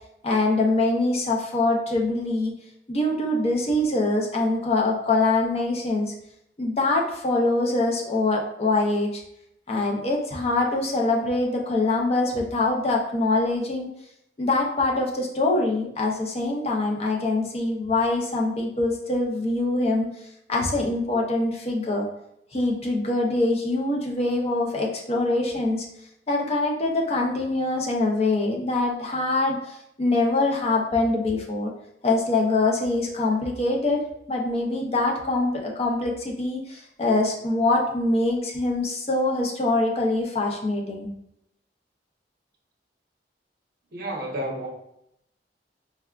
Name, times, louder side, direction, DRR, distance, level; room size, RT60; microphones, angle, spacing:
voice 1, 0.2-2.5 2.9-6.1 6.6-9.2 9.7-13.9 14.4-20.1 20.5-22.1 22.5-25.8 26.3-31.7 32.0-34.0 34.3-41.1, left 2 dB, 35° left, 0 dB, 0.5 m, -24 dB
voice 2, 43.9-44.7, right 1 dB, 55° right, -1 dB, 0.7 m, -30 dB
4.6 x 2.2 x 2.3 m, 0.77 s
head